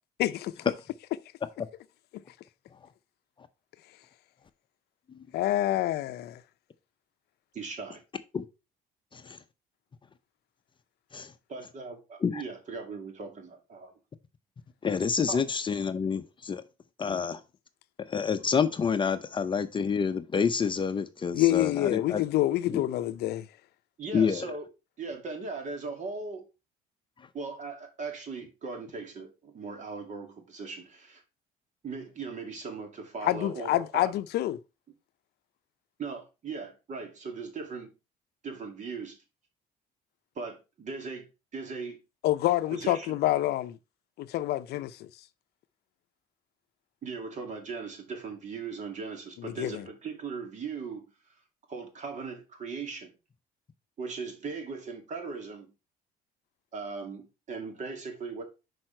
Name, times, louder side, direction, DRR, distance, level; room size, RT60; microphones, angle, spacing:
voice 1, 0.2-0.5 2.1-2.2 5.3-6.4 17.1-17.2 21.3-23.5 33.2-34.6 42.2-43.8 44.2-45.1 49.4-49.8, left 14 dB, 75° left, 0.5 m, -27 dB
voice 2, 7.5-8.0 11.5-13.9 15.3-15.4 24.0-24.7 25.0-26.4 27.3-31.2 31.8-34.1 36.0-37.9 38.4-39.2 40.4-42.0 42.7-43.2 47.0-51.1 51.7-53.1 54.0-55.7 56.7-58.4, right 4 dB, 45° right, 2.2 m, -39 dB
voice 3, 14.8-16.6 17.0-17.4 18.1-22.2 22.7-22.8 24.1-24.5, left 6 dB, 30° left, 0.6 m, -28 dB
6.3 x 4.8 x 4.4 m
cardioid pair, 110°, 17 cm